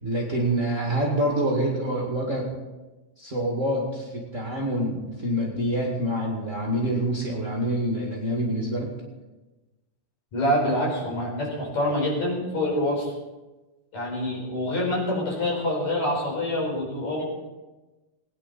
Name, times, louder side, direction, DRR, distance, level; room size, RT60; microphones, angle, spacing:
voice 1, 0.0-2.5 3.2-8.9, right 1 dB, 25° right, -3 dB, 1.9 m, -26 dB
voice 2, 10.3-13.1 13.9-17.2, left 1 dB, 60° left, -3 dB, 5.9 m, -26 dB
20.0 x 10.0 x 4.2 m, 1.1 s
omnidirectional pair, 3.6 m